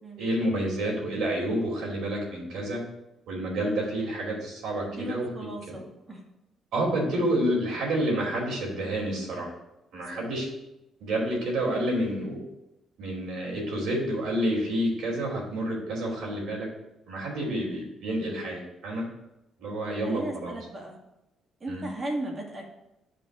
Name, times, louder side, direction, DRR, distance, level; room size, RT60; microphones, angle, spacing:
voice 1, 0.2-2.8 3.3-5.7 6.7-9.5 9.9-10.5 11.0-12.4 13.0-16.7 17.1-19.0 19.6-20.6 21.7-21.9, right 1 dB, 80° right, -2 dB, 2.9 m, -29 dB
voice 2, 4.8-6.2 9.9-10.2 19.8-21.0 21.6-22.9, right 1 dB, 35° right, 0 dB, 1.9 m, -37 dB
12.0 x 5.1 x 2.5 m, 0.91 s
cardioid pair, 90°, 0 cm